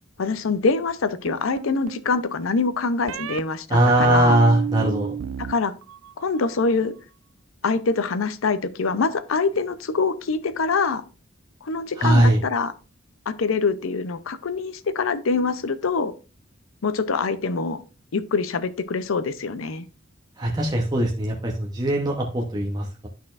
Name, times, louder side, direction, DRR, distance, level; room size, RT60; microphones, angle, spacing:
voice 1, 0.2-4.4 5.4-5.7 6.2-6.9 7.6-11.0 11.6-12.7 13.3-16.1 16.8-17.8 18.1-19.9, left 4 dB, 80° left, 0.6 m, -24 dB
sound 1, 1.3-2.1 3.1-3.4 4.0-5.5 5.8-6.4, right 9 dB, 85° right, 0.3 m, -32 dB
voice 2, 3.7-5.2 12.0-12.4 20.4-23.1, right 1 dB, 20° right, 0.8 m, -20 dB
12.0 x 4.2 x 2.4 m
head